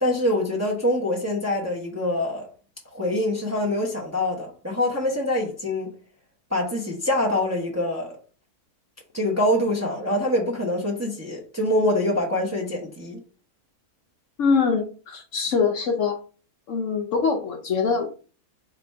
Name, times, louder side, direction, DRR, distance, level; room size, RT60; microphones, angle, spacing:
voice 1, 0.0-2.5 2.9-5.9 6.5-8.1 9.1-13.2, left 1 dB, 15° right, 0.8 m, -25 dB
voice 2, 14.4-16.2 16.7-18.1, left 5 dB, 60° left, 1.0 m, -23 dB
4.2 x 2.6 x 4.5 m
omnidirectional pair, 1.6 m